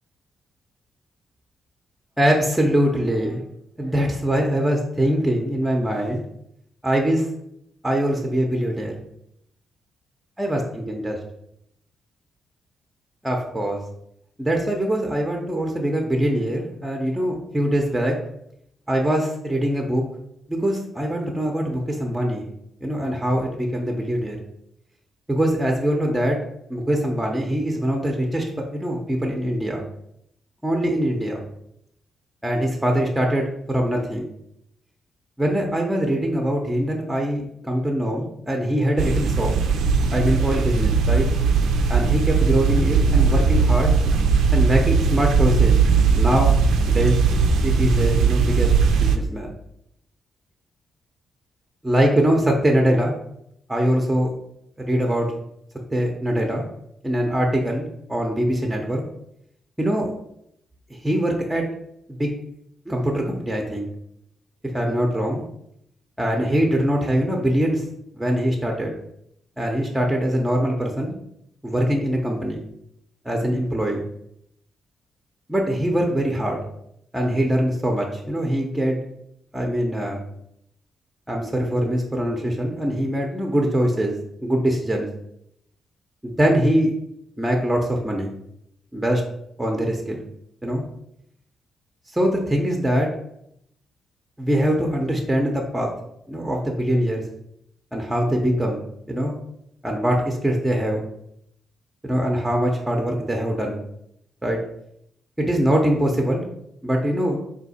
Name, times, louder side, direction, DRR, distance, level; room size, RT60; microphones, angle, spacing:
voice 1, 2.2-3.4 3.8-6.2 6.8-7.3 7.8-8.9 10.4-11.2 13.2-13.8 14.4-18.2 18.9-20.0 20.5-22.5 22.8-24.4 25.3-26.4 26.7-28.4 28.7-29.8 30.6-31.4 32.4-34.3 35.4-39.5 40.1-41.3 41.9-44.0 44.5-45.8 46.1-46.6 46.9-47.2 47.6-49.5 51.8-53.1 53.7-54.3 54.8-55.3 55.9-56.6 57.0-59.0 59.8-60.1 60.9-61.7 62.1-62.3 62.9-63.9 64.7-65.4 66.2-67.8 68.1-68.9 69.6-71.1 71.6-72.6 73.2-74.0 75.5-76.6 77.1-79.0 79.5-80.2 81.3-84.1 84.4-85.1 86.2-86.9 87.4-88.3 88.9-89.2 89.6-90.2 90.6-90.8 92.1-93.1 94.4-95.9 96.3-97.2 97.9-98.8 99.1-99.3 99.8-101.0 102.0-103.8 104.4-104.6 105.4-106.4 106.8-107.4, equal, 10° right, 1 dB, 0.6 m, -22 dB
sound 1, 39.0-49.2, right 5 dB, 90° right, 0.4 m, -19 dB
3.4 x 2.8 x 4.0 m, 0.75 s
cardioid pair, 90°, 0 cm